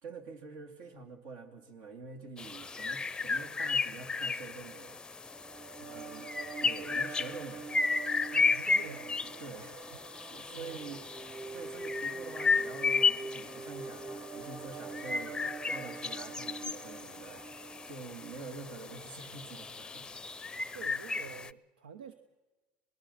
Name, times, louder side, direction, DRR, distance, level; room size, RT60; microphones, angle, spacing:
voice 1, 0.0-5.0 5.9-6.3 6.6-7.7 9.2-9.8 10.3-11.0 11.5-20.1, right 4 dB, 70° right, 5 dB, 3.1 m, -46 dB
sound 1, 2.4-21.5, left 4 dB, 15° left, 0.6 m, -34 dB
sound 2, 5.2-18.6, right 4 dB, 30° right, 0.9 m, -45 dB
voice 2, 5.8-6.1 8.3-9.3 10.5-11.1 20.0-20.2 20.7-22.1, right 7 dB, 90° right, 11 dB, 0.9 m, -49 dB
26.5 x 19.0 x 5.7 m, 1.2 s
hypercardioid pair, 80°, 5 cm